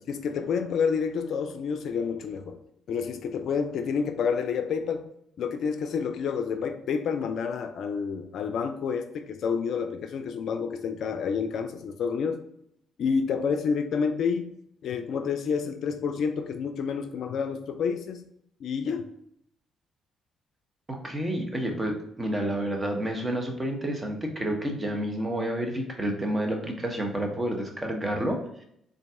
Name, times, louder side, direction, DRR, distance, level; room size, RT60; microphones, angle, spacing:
voice 1, 0.1-2.6 2.9-5.1 5.4-12.4 13.0-14.5 14.8-18.2 18.6-19.1, left 6 dB, 65° left, 8 dB, 0.4 m, -29 dB
voice 2, 20.9-28.6, right 1 dB, 25° right, 3 dB, 1.0 m, -29 dB
4.0 x 2.6 x 3.6 m, 0.73 s
hypercardioid pair, 50°, 0 cm